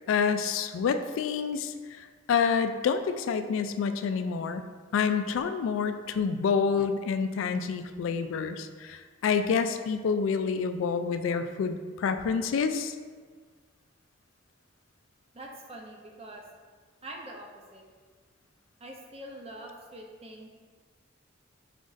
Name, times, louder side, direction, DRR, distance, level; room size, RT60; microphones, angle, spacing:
voice 1, 0.1-4.6 4.9-13.0, left 6 dB, 85° left, 9 dB, 0.3 m, -28 dB
voice 2, 15.3-16.4 17.0-17.8 18.8-20.5, right 1 dB, 30° right, 1 dB, 0.5 m, -44 dB
5.1 x 2.5 x 3.8 m, 1.5 s
head